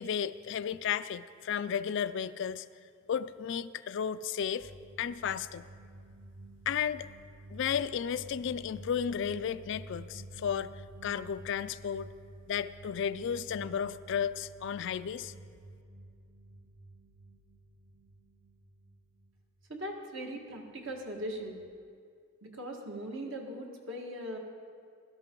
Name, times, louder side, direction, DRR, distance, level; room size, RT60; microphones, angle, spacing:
voice 1, 0.0-2.7 3.1-4.7 5.0-5.7 6.7-7.1 7.5-12.1 12.5-15.3, left 8 dB, 60° left, 14 dB, 0.4 m, -33 dB
sound 1, 4.6-19.7 20.9-21.7, right 1 dB, 45° right, 0.7 m, -51 dB
voice 2, 19.7-21.6 22.4-24.4, equal, 65° right, 1 dB, 1.7 m, -39 dB
15.5 x 13.0 x 3.8 m, 2.3 s
head